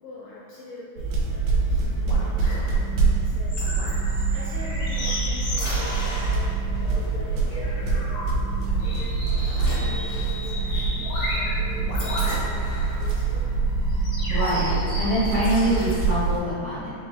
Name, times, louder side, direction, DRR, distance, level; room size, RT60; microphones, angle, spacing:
voice 1, 0.0-3.5 4.3-8.2 8.8-13.4, equal, 80° left, -6 dB, 1.5 m, -43 dB
sound 1, 1.0-16.4, right 4 dB, 90° right, 2.1 m, -25 dB
sound 2, 1.6-16.0, equal, 60° left, 1.5 m, -34 dB
voice 2, 14.3-16.9, equal, 75° right, -14 dB, 0.6 m, -25 dB
5.8 x 2.1 x 3.3 m, 2.4 s
omnidirectional pair, 3.4 m